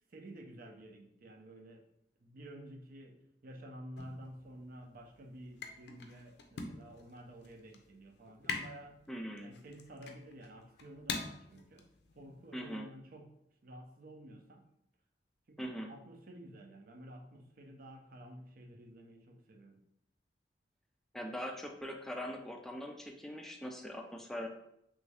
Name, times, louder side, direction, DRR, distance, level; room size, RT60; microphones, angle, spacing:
voice 1, 0.1-1.9 2.2-9.0 9.4-11.9 12.1-13.3 13.6-14.6 15.5-19.8, right 1 dB, 55° right, 3 dB, 0.5 m, -51 dB
sound 1, 4.0-12.8, left 4 dB, 65° left, 0.5 m, -45 dB
voice 2, 9.1-9.5 12.5-12.9 15.6-15.9 21.1-24.5, equal, ahead, 2 dB, 0.3 m, -41 dB
3.1 x 2.6 x 3.4 m, 0.77 s
head